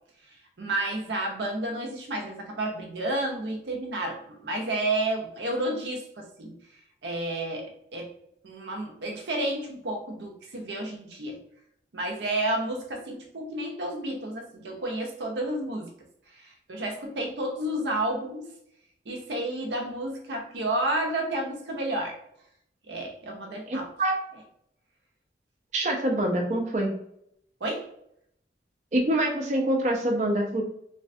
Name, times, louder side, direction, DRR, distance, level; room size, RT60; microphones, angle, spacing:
voice 1, 0.6-6.6 7.0-8.1 8.4-11.4 11.9-15.9 16.3-18.5 19.1-22.2 22.9-23.9 27.6-27.9, right 1 dB, 85° right, 2 dB, 0.7 m, -31 dB
voice 2, 23.7-24.2 25.7-26.9 28.9-30.6, right 1 dB, 40° right, 2 dB, 0.4 m, -25 dB
3.2 x 2.1 x 2.6 m, 0.73 s
head